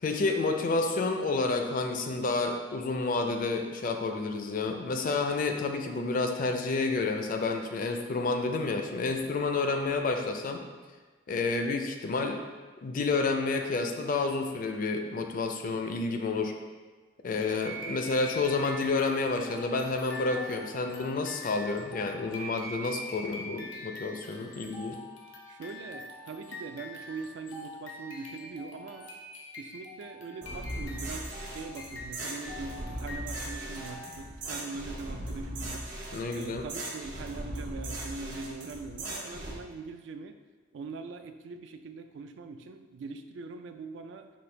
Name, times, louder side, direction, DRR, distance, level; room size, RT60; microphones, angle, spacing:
voice 1, 0.0-10.6 11.3-12.4 12.8-16.5 17.2-25.0 36.1-36.7, left 3 dB, 50° left, 5 dB, 0.4 m, -30 dB
sound 1, 17.4-34.4, left 1 dB, 90° left, 0.7 m, -44 dB
voice 2, 25.5-29.1 29.5-35.9 36.3-40.4 40.7-44.3, right 4 dB, 70° right, 7 dB, 0.3 m, -42 dB
sound 2, 30.4-39.6, right 1 dB, 45° right, 0.8 m, -39 dB
5.3 x 2.5 x 3.2 m, 1.3 s
head